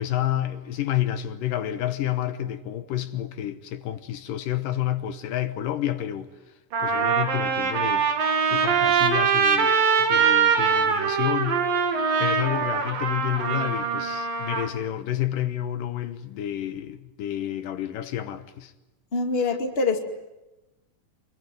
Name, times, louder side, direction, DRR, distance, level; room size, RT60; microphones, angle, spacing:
voice 1, 0.0-6.3 6.8-8.1 8.4-11.6 12.2-18.7, left 12 dB, 75° left, 2.7 m, -29 dB
Trumpet, 6.0-6.1 6.7-14.7, right 6 dB, 80° right, 4.7 m, -23 dB
voice 2, 19.1-20.0, left 3 dB, 20° left, 2.0 m, -24 dB
25.5 x 23.0 x 9.3 m
omnidirectional pair, 3.9 m